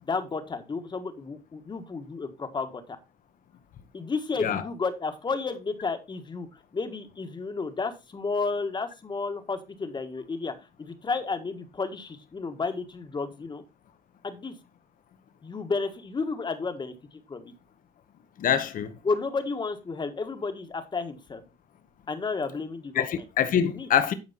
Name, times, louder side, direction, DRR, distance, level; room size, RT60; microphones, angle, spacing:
voice 1, 0.0-3.0 3.9-6.5 6.7-13.6 14.2-14.5 15.4-16.9 17.3-17.5 19.0-21.4 22.1-23.1 23.7-23.9, left 4 dB, 25° left, 1.6 m, -32 dB
voice 2, 18.4-18.9 23.0-24.1, left 9 dB, 55° left, 1.2 m, -25 dB
11.0 x 4.6 x 4.3 m
cardioid pair, 110°, 17 cm